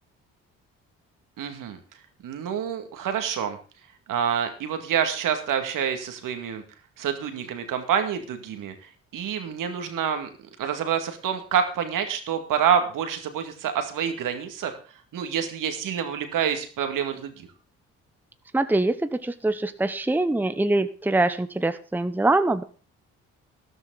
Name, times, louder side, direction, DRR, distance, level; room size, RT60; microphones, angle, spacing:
voice 1, 1.4-1.8 2.2-3.6 4.1-6.6 7.0-10.3 10.6-14.8 15.1-17.5, right 8 dB, 70° right, 7 dB, 2.1 m, -27 dB
voice 2, 18.5-22.6, right 2 dB, 5° right, 11 dB, 0.9 m, -24 dB
13.0 x 12.0 x 4.0 m, 0.37 s
hypercardioid pair, 55°, 34 cm